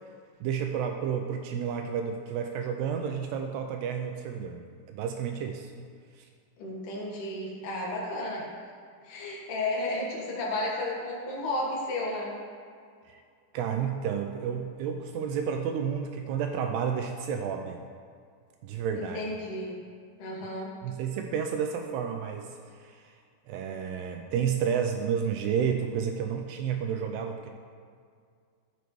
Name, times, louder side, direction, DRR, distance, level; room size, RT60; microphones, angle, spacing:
voice 1, 0.4-5.7 6.2-6.3 13.1-13.2 13.5-17.8 18.6-19.2 20.8-23.1 23.5-27.5, right 7 dB, 85° right, 4 dB, 2.4 m, -31 dB
voice 2, 6.6-8.4 9.0-12.4 19.0-19.8 20.2-20.7, left 1 dB, 70° left, -3 dB, 3.4 m, -33 dB
13.0 x 8.2 x 3.1 m, 2.2 s
omnidirectional pair, 5.0 m